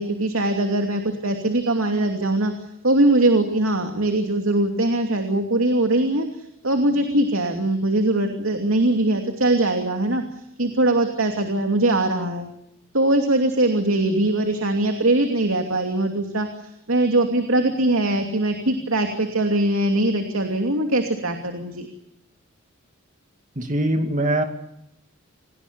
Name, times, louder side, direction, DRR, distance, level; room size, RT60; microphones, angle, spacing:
voice 1, 0.0-2.5 2.8-10.2 10.6-12.5 12.9-21.9, right 1 dB, 75° right, 4 dB, 2.8 m, -21 dB
voice 2, 23.6-24.4, right 1 dB, 35° right, 5 dB, 2.4 m, -22 dB
28.0 x 19.0 x 6.9 m, 0.81 s
head